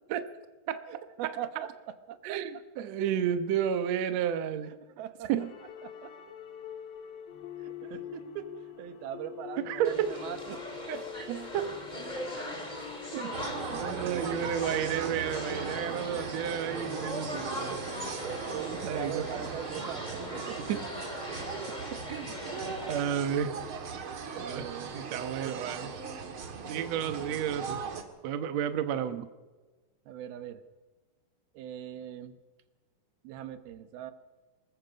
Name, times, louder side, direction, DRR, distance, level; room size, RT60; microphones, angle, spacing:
voice 1, 0.9-2.4 4.7-5.3 5.8-6.1 7.6-8.5 8.8-10.8 13.7-14.6 18.5-20.6 24.3-25.0 30.1-30.6 31.5-32.4 33.2-34.1, right 10 dB, 90° right, 10 dB, 3.1 m, -41 dB
voice 2, 2.2-4.8 5.3-5.5 9.6-10.2 10.9-11.7 12.4-12.5 13.1-17.9 18.9-19.3 20.7-20.8 21.9-22.4 22.9-23.6 24.3-24.7 24.9-25.9 26.7-27.8 28.2-29.3, right 9 dB, 60° right, 10 dB, 1.9 m, -32 dB
sound 1, 5.4-18.6, left 10 dB, 50° left, 2.4 m, -46 dB
sound 2, 9.8-23.0, left 1 dB, 15° left, 2.2 m, -40 dB
sound 3, 13.3-28.0, right 5 dB, 45° right, 2.1 m, -38 dB
24.5 x 21.0 x 5.3 m, 1.3 s
omnidirectional pair, 4.2 m